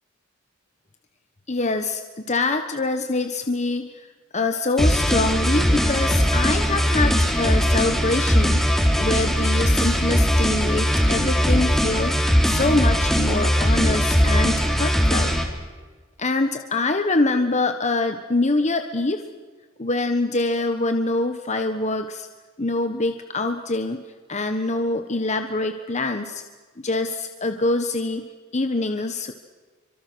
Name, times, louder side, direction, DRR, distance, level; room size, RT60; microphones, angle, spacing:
voice 1, 1.5-4.1 4.3-8.6 9.0-15.3 16.2-19.2 19.8-22.3 22.6-24.0 24.3-26.4 26.8-28.3 28.5-29.3, left 2 dB, 35° left, 7 dB, 1.3 m, -25 dB
sound 1, 4.8-15.4, equal, ahead, 3.7 m, -20 dB
28.0 x 25.0 x 6.3 m, 1.4 s
head